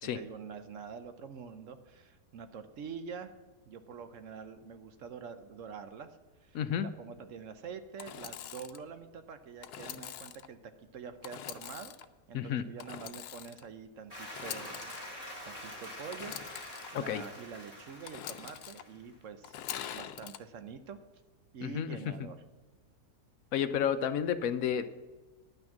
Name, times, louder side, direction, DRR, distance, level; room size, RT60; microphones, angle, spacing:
voice 1, 0.0-3.3 3.7-6.1 6.4-10.6 10.9-11.9 12.3-14.9 15.4-19.6 19.9-21.0 21.5-22.4, right 6 dB, 60° right, 10 dB, 1.0 m, -46 dB
voice 2, 6.5-6.9 12.3-12.6 16.9-17.2 21.6-22.0 23.5-24.9, left 9 dB, 70° left, 11 dB, 1.0 m, -31 dB
Engine / Sawing, 8.0-8.8 9.6-10.5 11.2-12.1 12.8-13.7 14.3-15.0 16.1-16.9 18.0-18.8 19.4-20.4, left 11 dB, 90° left, 1.2 m, -43 dB
Applause, 14.1-19.1, left 1 dB, 20° right, 3.3 m, -46 dB
10.5 x 6.1 x 7.2 m, 1.3 s
omnidirectional pair, 1.6 m